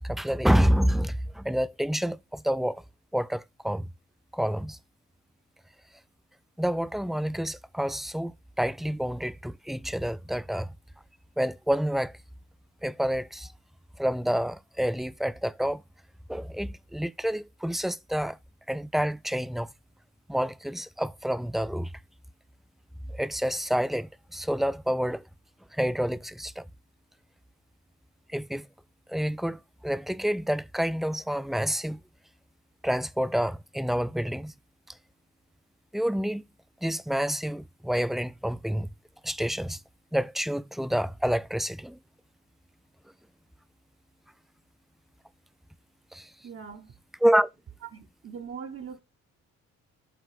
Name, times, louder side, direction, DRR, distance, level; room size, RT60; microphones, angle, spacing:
voice 1, 0.0-2.8 3.1-3.9 4.3-4.8 6.6-10.7 11.4-12.1 12.8-13.5 14.0-15.8 16.3-18.4 18.7-19.7 20.3-21.9 23.1-25.2 25.7-26.7 28.3-28.7 29.1-32.0 32.8-34.5 34.9-35.0 35.9-36.4 36.8-38.9 39.2-39.8 40.1-42.0 46.1-46.3 47.2-47.5, equal, ahead, 0.3 m, -28 dB
voice 2, 46.4-46.9 47.8-49.0, right 7 dB, 45° right, 0.9 m, -41 dB
8.0 x 3.6 x 4.9 m
cardioid pair, 90°, 30 cm